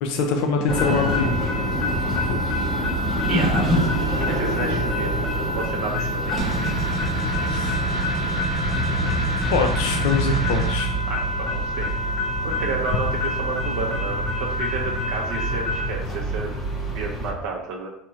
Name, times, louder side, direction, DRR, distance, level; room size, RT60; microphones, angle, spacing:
voice 1, 0.0-1.6 2.3-2.6 7.5-7.7 9.4-11.0, left 4 dB, 70° left, 3 dB, 0.4 m, -24 dB
sound 1, 0.7-17.3, equal, 15° left, 0.7 m, -25 dB
voice 2, 3.3-5.1 5.4-6.4 11.1-11.9 12.4-16.5 16.9-17.9, right 5 dB, 65° right, -1 dB, 0.5 m, -31 dB
sound 2, 6.4-10.8, right 2 dB, 25° right, 0.7 m, -28 dB
4.2 x 2.8 x 2.4 m, 0.76 s
cardioid pair, 155°, 0 cm